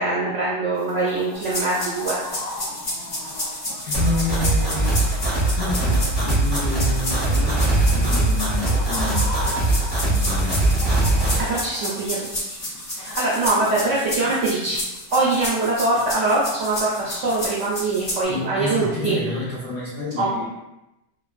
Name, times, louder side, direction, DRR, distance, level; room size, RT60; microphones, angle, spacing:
voice 1, 0.0-2.2 11.5-12.3 12.9-14.8 15.1-19.2 20.2-20.5, right 2 dB, 70° right, -6 dB, 0.7 m, -23 dB
Chicken rooster, 0.7-18.5, left 1 dB, 80° left, 1.3 m, -40 dB
sound 1, 1.4-18.2, left 1 dB, 40° left, 1.3 m, -31 dB
voice 2, 3.8-10.5 13.8-14.0 14.2-14.3 18.3-20.5, left 3 dB, 60° left, -8 dB, 0.9 m, -30 dB
sound 2, 3.9-11.4, right 2 dB, 20° left, 0.8 m, -21 dB
3.2 x 2.0 x 2.3 m, 0.94 s
omnidirectional pair, 1.8 m